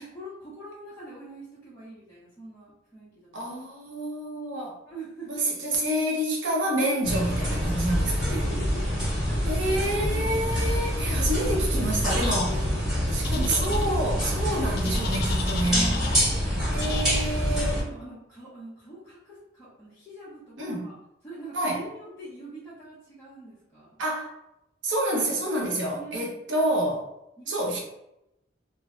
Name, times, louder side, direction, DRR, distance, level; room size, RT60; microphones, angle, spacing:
voice 1, 0.0-3.3 3.9-4.0 4.8-5.5 7.9-10.8 12.1-12.8 13.2-13.7 15.7-16.3 17.3-20.9 21.2-24.0 25.9-26.2 27.4-27.8, right 1 dB, 15° left, -12 dB, 0.8 m, -43 dB
voice 2, 3.3-4.8 5.3-8.4 9.5-12.5 13.1-15.9 16.7-17.8 20.6-20.9 21.5-21.8 24.0-24.3 24.8-27.1 27.5-27.8, right 1 dB, 75° right, -1 dB, 0.8 m, -28 dB
sound 1, 7.0-17.8, equal, 5° right, 1.4 m, -26 dB
sound 2, 13.2-13.9 14.8-16.3 16.8-17.2, left 6 dB, 55° left, 0.3 m, -36 dB
3.1 x 2.1 x 2.5 m, 0.85 s
head